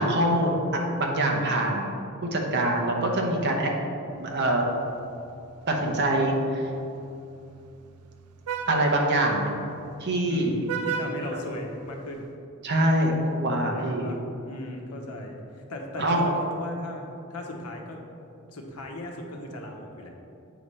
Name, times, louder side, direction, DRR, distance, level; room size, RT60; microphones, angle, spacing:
voice 1, 0.0-2.0 2.2-3.7 4.2-4.6 5.7-6.7 8.7-9.5 10.0-10.5 11.3-11.4 12.6-14.1 16.0-16.3, right 1 dB, 50° right, 0 dB, 0.9 m, -24 dB
Vehicle horn car horn honking, 4.2-12.3, right 6 dB, 85° right, 0.4 m, -39 dB
voice 2, 10.3-12.3 13.7-18.0 18.5-20.1, left 1 dB, 85° left, 2 dB, 0.9 m, -37 dB
7.9 x 3.3 x 5.4 m, 2.7 s
head